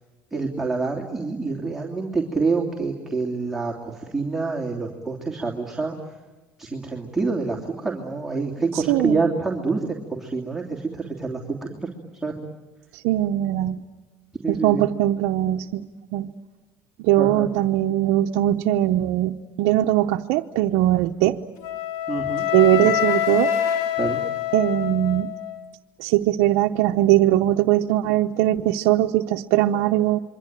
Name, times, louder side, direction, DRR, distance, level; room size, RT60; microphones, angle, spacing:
voice 1, 0.3-6.0 6.6-11.9 12.2-12.3 14.4-14.8 17.2-17.5 22.1-22.5 22.8-22.9 24.0-24.2, right 4 dB, 5° right, -2 dB, 3.1 m, -27 dB
voice 2, 8.7-9.2 12.9-13.8 14.5-15.9 16.1-16.3 17.0-21.4 22.5-23.5 24.5-25.3 26.0-30.2, right 14 dB, 80° right, 2 dB, 0.8 m, -20 dB
Wind instrument woodwind instrument, 21.6-25.7, left 10 dB, 75° left, 2.4 m, -25 dB
27.5 x 23.5 x 9.1 m, 1.2 s
supercardioid pair, 110°, 7 cm